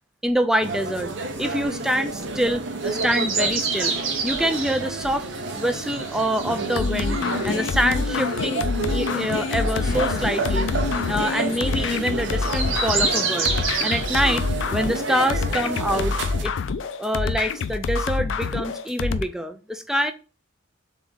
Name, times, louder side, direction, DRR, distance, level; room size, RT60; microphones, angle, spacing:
voice 1, 0.2-1.1 1.4-5.3 5.5-7.2 7.4-8.6 8.9-10.7 11.1-13.5 13.8-14.4 14.7-16.1 16.4-16.5 17.0-20.1, equal, 5° right, 7 dB, 0.4 m, -25 dB
sound 1, 0.6-16.4, right 3 dB, 60° right, 0.7 m, -31 dB
sound 2, 2.8-14.2, right 4 dB, 80° right, 1.1 m, -30 dB
sound 3, 6.8-19.2, left 4 dB, 70° left, 0.4 m, -26 dB
3.6 x 3.5 x 3.9 m, 0.34 s
head